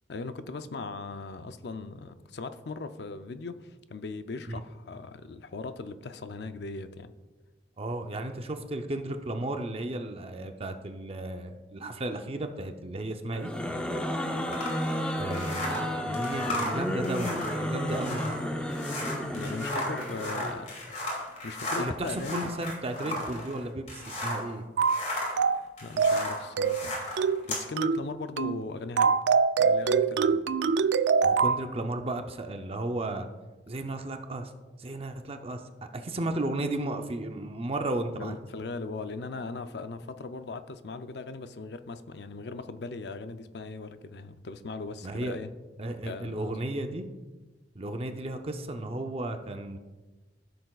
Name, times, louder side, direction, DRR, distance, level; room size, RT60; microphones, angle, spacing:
voice 1, 0.1-7.1 19.3-22.5 23.0-23.2 25.8-27.0 27.5-29.2 29.6-30.4 38.2-45.5 46.1-46.8, left 3 dB, 65° left, 10 dB, 0.5 m, -39 dB
voice 2, 7.8-13.5 15.2-18.3 21.8-24.6 30.3-30.4 31.2-33.3 33.7-34.5 34.8-38.4 45.0-45.4 45.8-47.0 47.7-49.8, right 1 dB, 35° right, 6 dB, 0.6 m, -34 dB
sound 1, 13.3-20.7, equal, 5° left, 0.6 m, -32 dB
sound 2, 14.5-24.5 24.8-27.7, left 1 dB, 40° left, 2.6 m, -35 dB
sound 3, 24.8-25.0 25.4-25.6 26.0-26.3 26.6-26.8 27.2-27.4 27.8-28.0 28.4-28.6 29.0-31.6, right 5 dB, 75° right, 0.3 m, -24 dB
14.0 x 6.7 x 2.4 m, 1.2 s
head